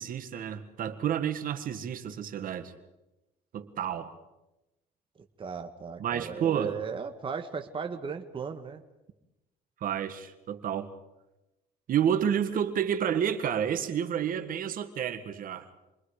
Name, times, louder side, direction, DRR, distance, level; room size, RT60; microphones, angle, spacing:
voice 1, 0.0-2.7 3.5-4.1 6.0-6.8 9.8-10.9 11.9-15.7, right 9 dB, 55° right, 8 dB, 1.8 m, -30 dB
voice 2, 5.4-8.8, right 6 dB, 30° right, 5 dB, 1.5 m, -36 dB
28.5 x 23.0 x 5.0 m, 0.97 s
cardioid pair, 110°, 17 cm